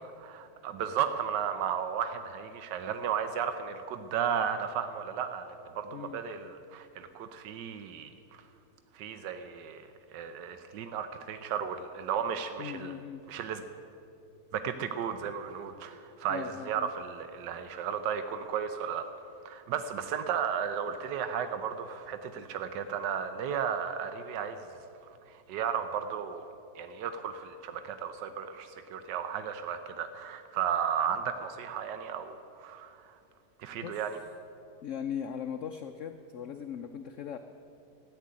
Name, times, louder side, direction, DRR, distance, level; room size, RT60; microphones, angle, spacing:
voice 1, 0.2-8.4 8.9-9.8 10.1-12.9 13.3-13.6 14.5-19.1 19.4-24.7 25.3-26.5 26.7-33.2 33.6-34.2, right 8 dB, 85° right, 9 dB, 1.4 m, -34 dB
voice 2, 12.6-13.2 16.3-16.9 33.8-34.0 34.8-37.4, left 8 dB, 65° left, 8 dB, 0.8 m, -39 dB
13.5 x 9.5 x 9.5 m, 2.7 s
omnidirectional pair, 1.8 m